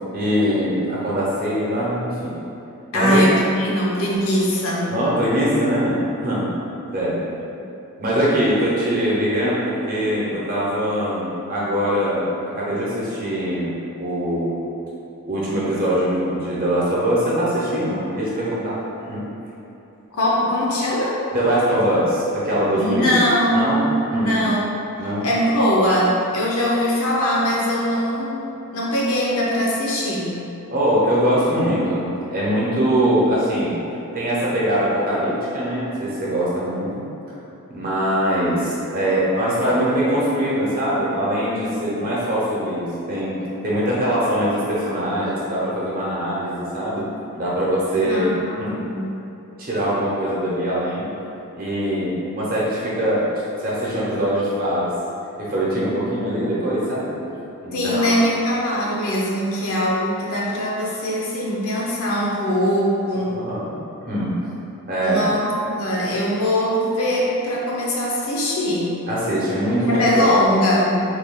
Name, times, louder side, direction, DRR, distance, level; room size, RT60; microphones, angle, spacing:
voice 1, 0.1-2.4 2.9-3.2 4.9-6.5 6.9-7.2 8.0-14.5 15.3-19.3 21.3-23.2 23.5-23.8 24.1-24.4 25.0-25.3 30.7-33.8 34.1-36.9 37.7-47.0 47.4-48.8 49.6-51.1 51.6-54.9 55.4-57.2 57.6-58.2 63.1-64.5 64.9-65.2 69.1-70.2, equal, 40° right, -7 dB, 0.8 m, -22 dB
voice 2, 2.9-4.9 20.1-21.2 22.8-30.3 48.0-49.1 57.7-63.3 65.0-68.9 69.9-71.0, equal, 70° left, -5 dB, 0.6 m, -21 dB
3.2 x 2.3 x 3.6 m, 2.8 s
head